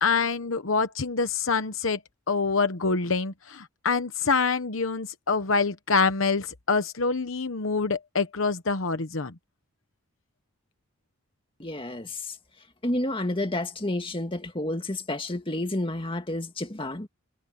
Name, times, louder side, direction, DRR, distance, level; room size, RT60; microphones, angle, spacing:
voice 1, 0.0-2.0 2.3-9.3, left 4 dB, 65° left, 1.0 m, -26 dB
voice 2, 11.6-12.4 12.8-17.1, left 1 dB, 25° left, 2.0 m, -30 dB
head